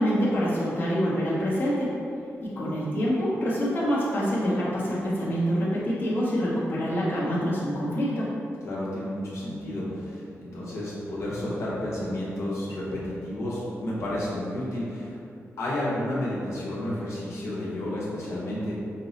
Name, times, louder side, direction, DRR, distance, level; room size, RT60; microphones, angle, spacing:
voice 1, 0.0-1.9 2.4-8.3, equal, 45° left, -8 dB, 0.9 m, -26 dB
voice 2, 8.6-15.2 15.6-18.8, left 1 dB, 70° left, -7 dB, 0.9 m, -31 dB
5.3 x 2.0 x 3.9 m, 2.6 s
wide cardioid pair, 155°, 5 cm